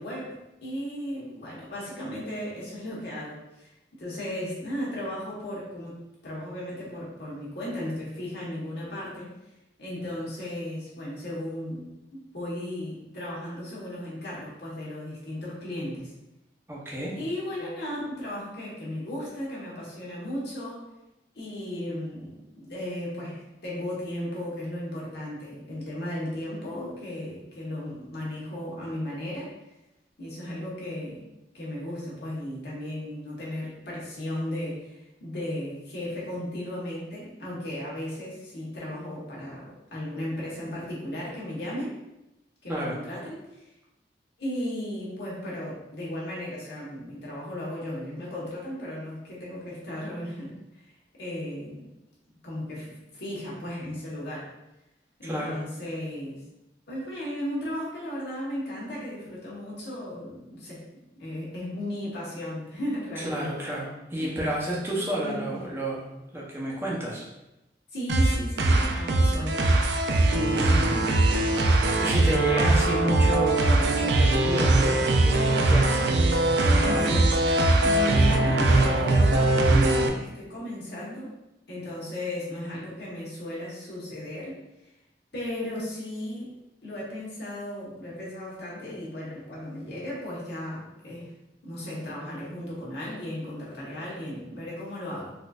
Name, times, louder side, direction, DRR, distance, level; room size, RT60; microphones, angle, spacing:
voice 1, 0.0-3.7 4.0-6.0 6.2-9.3 9.8-11.9 12.3-16.1 17.2-20.8 21.3-29.5 30.2-31.2 31.5-39.6 39.9-42.0 42.6-43.7 44.4-50.9 51.2-51.8 52.4-52.9 53.1-54.5 55.2-56.4 56.9-60.8 61.2-63.7 64.1-64.4 65.2-65.5 67.9-69.6 70.7-70.9 76.8-77.3 77.8-81.3 81.7-84.6 85.3-86.5 86.8-91.3 91.6-95.3, left 1 dB, 75° left, -6 dB, 1.3 m, -35 dB
voice 2, 16.7-17.2 42.7-43.0 55.2-55.6 63.2-66.1 66.3-67.3 70.3-71.1 72.0-76.2 76.6-77.0, equal, 15° right, -5 dB, 0.7 m, -31 dB
sound 1, 68.1-80.1, right 2 dB, 80° right, 0.4 m, -21 dB
4.0 x 2.6 x 2.4 m, 0.93 s
head